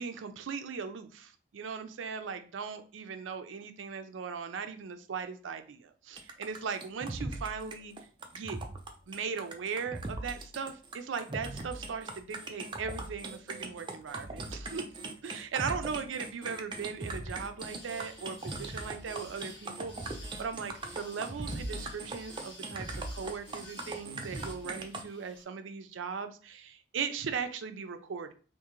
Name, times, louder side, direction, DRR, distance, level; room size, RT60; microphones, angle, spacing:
voice 1, 0.0-7.9 8.3-8.6 9.1-28.3, right 6 dB, 90° right, 9 dB, 0.4 m, -38 dB
sound 1, 6.2-25.0, right 2 dB, 25° right, 0.4 m, -40 dB
sound 2, 17.6-25.4, left 2 dB, 30° left, 1.4 m, -53 dB
3.6 x 2.5 x 2.9 m, 0.40 s
head